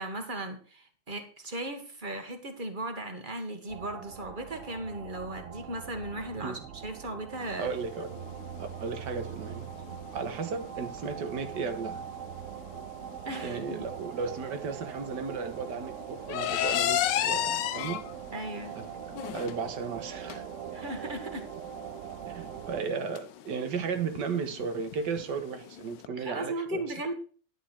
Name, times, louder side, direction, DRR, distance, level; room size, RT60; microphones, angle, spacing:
voice 1, 0.0-7.7 9.9-10.0 13.2-13.9 18.3-18.8 20.7-21.5 26.1-27.1, right 1 dB, 30° right, 6 dB, 1.6 m, -37 dB
sound 1, 3.7-22.8, right 9 dB, 60° right, 0.9 m, -42 dB
sound 2, 7.4-26.1, left 11 dB, 80° left, 1.3 m, -36 dB
voice 2, 7.6-8.2 8.6-9.7 10.1-12.1 13.4-18.0 18.8-18.9 19.3-20.4 22.3-26.8, right 5 dB, 75° right, 9 dB, 1.8 m, -35 dB
11.0 x 8.8 x 4.3 m, 0.41 s
omnidirectional pair, 1.9 m